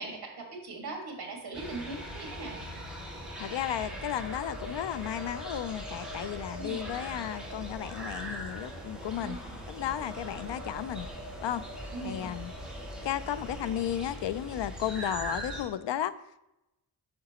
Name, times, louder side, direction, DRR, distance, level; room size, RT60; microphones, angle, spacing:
voice 1, 0.0-2.6 6.6-6.9 9.2-9.6 11.9-12.3, right 3 dB, 60° right, 2.0 m, -40 dB
sound 1, 1.5-15.6, equal, ahead, 2.0 m, -40 dB
voice 2, 3.4-9.4 9.7-11.1 11.4-11.6 12.0-12.5 13.0-16.1, left 11 dB, 85° left, 0.5 m, -34 dB
8.8 x 6.5 x 3.0 m
wide cardioid pair, 155°, 42 cm